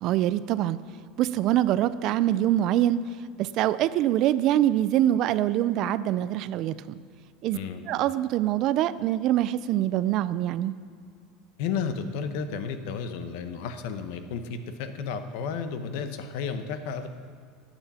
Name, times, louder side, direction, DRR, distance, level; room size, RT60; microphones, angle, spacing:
voice 1, 0.0-0.8 1.2-3.0 3.4-7.0 7.4-7.6 7.9-10.7, right 12 dB, 50° right, 15 dB, 0.4 m, -24 dB
voice 2, 7.5-7.9 11.6-17.1, left 6 dB, 70° left, 9 dB, 0.9 m, -32 dB
14.0 x 8.8 x 4.3 m, 2.1 s
supercardioid pair, 145°, 0 cm